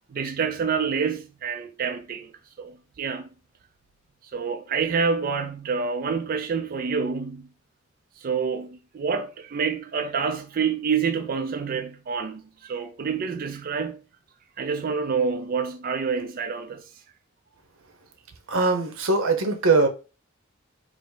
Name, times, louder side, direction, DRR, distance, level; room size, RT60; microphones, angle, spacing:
voice 1, 0.1-2.3 2.6-3.3 4.3-7.5 8.2-14.0 14.6-16.8, right 5 dB, 45° right, 0.3 m, -27 dB
voice 2, 18.5-19.9, right 3 dB, 90° right, 0.8 m, -21 dB
4.9 x 2.0 x 3.8 m
head